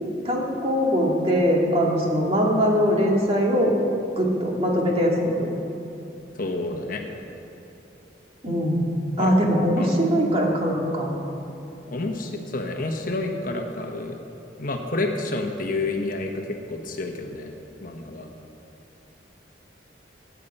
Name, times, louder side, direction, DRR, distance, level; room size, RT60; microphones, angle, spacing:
voice 1, 0.2-3.7 4.2-5.5 8.4-8.9 9.2-11.1, equal, 30° right, -1 dB, 2.0 m, -21 dB
voice 2, 6.3-7.0 9.2-9.3 9.8-10.0 11.9-14.2 14.6-17.5 17.8-18.3, left 2 dB, 50° left, 3 dB, 1.1 m, -29 dB
19.0 x 8.4 x 5.5 m, 2.9 s
head